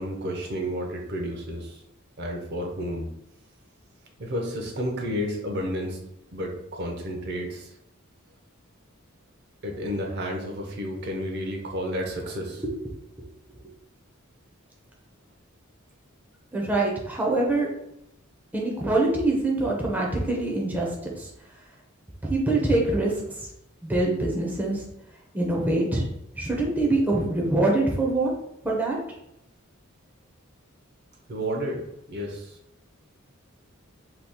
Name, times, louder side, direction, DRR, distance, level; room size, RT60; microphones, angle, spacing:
voice 1, 0.0-1.8 2.2-3.1 4.2-6.0 6.3-7.7 9.6-12.6 31.3-31.8 32.1-32.6, equal, 55° right, 1 dB, 0.6 m, -31 dB
voice 2, 16.5-17.7 18.5-21.3 22.3-23.1 23.8-24.8 25.3-26.1 26.4-28.3 28.6-29.0, right 2 dB, 10° right, -2 dB, 0.5 m, -24 dB
2.8 x 2.3 x 3.5 m, 0.81 s
head